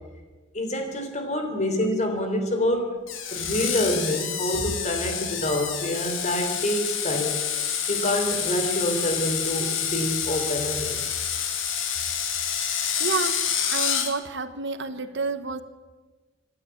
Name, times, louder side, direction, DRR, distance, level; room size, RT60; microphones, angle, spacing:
voice 1, 0.5-3.0 3.3-7.4 7.9-11.0, left 1 dB, 35° left, 5 dB, 3.7 m, -27 dB
Screech, 3.1-14.1, left 8 dB, 75° left, 2.7 m, -28 dB
voice 2, 13.0-13.4 13.7-15.6, right 4 dB, 60° right, 11 dB, 1.3 m, -29 dB
26.0 x 12.5 x 8.6 m, 1.3 s
head